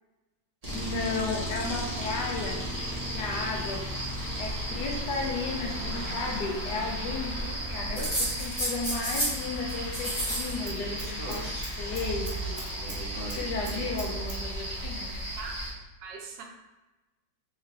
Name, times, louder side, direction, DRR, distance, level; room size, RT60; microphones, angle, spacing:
sound 1, 0.6-15.7, equal, 25° right, 1.0 m, -34 dB
voice 1, 0.7-2.7 3.1-3.8 4.4-11.4 11.8-12.6 13.4-15.2, left 3 dB, 70° left, 0 dB, 1.1 m, -34 dB
sound 2, 7.9-9.4 9.7-10.6 10.8-11.6 12.7-13.4, equal, 30° left, 1.3 m, -32 dB
Scissors, 8.0-9.9 10.2-10.4 10.7-13.0 13.3-14.4 14.6-14.7, right 3 dB, 55° right, 1.4 m, -43 dB
voice 2, 16.0-16.4, right 5 dB, 75° right, 1 dB, 1.2 m, -41 dB
3.5 x 3.3 x 3.2 m, 1.1 s
omnidirectional pair, 2.0 m